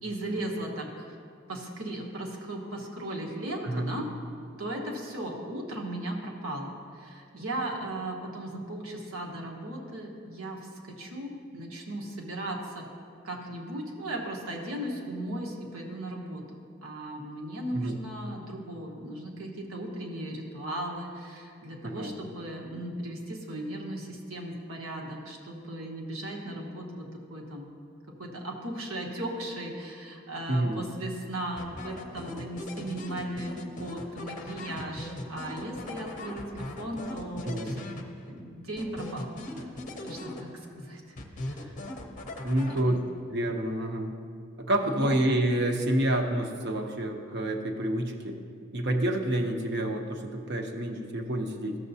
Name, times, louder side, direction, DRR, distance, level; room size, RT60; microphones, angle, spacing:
voice 1, 0.0-1.2 1.5-4.1 4.6-12.9 13.2-27.7 28.2-37.9 38.3-41.0 41.4-41.9 42.5-43.0 44.8-45.2, right 1 dB, 80° right, -1 dB, 1.3 m, -37 dB
voice 2, 21.8-22.1 30.5-30.8 37.4-37.7 42.4-43.0 43.3-44.1 44.6-48.4 48.7-51.8, right 1 dB, 50° right, 3 dB, 0.8 m, -28 dB
sound 1, 31.6-38.4 38.8-40.8 41.2-43.2, left 1 dB, 35° left, 0.6 m, -40 dB
13.5 x 6.9 x 2.7 m, 2.3 s
head